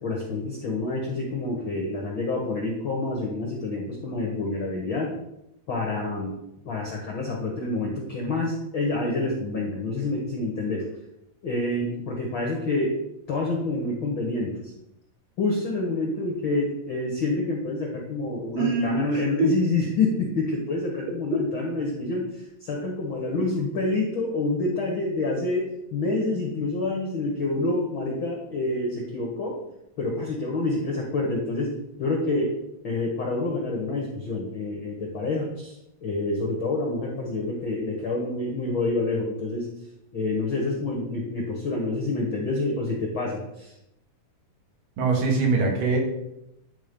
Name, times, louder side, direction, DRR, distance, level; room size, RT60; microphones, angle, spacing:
voice 1, 0.0-5.1 5.7-6.4 6.6-10.8 11.4-13.0 13.3-14.7 15.4-29.6 30.0-31.7 32.0-32.5 32.8-35.7 36.0-39.7 40.1-43.7, left 2 dB, 65° left, -1 dB, 1.2 m, -27 dB
voice 2, 18.5-19.5 45.0-46.0, right 4 dB, 75° right, 0 dB, 3.3 m, -23 dB
10.0 x 3.8 x 5.2 m, 0.85 s
omnidirectional pair, 4.0 m